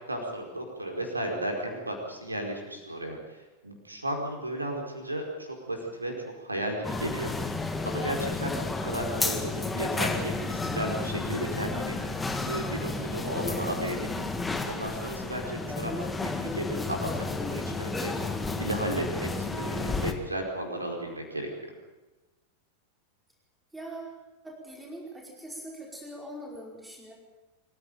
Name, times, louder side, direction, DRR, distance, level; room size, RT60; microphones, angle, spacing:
voice 1, 0.1-3.4 3.6-6.1 6.4-7.3 7.8-12.0 12.5-14.1 14.7-15.9 16.2-18.1 18.6-21.5, right 1 dB, 80° right, 2 dB, 4.7 m, -34 dB
sound 1, 6.8-20.1, left 3 dB, 10° left, 2.1 m, -32 dB
voice 2, 23.7-24.2 24.4-27.1, right 1 dB, 5° right, -2 dB, 5.1 m, -42 dB
24.5 x 15.5 x 9.2 m, 1.1 s
figure-of-eight pair, 90°, 0 cm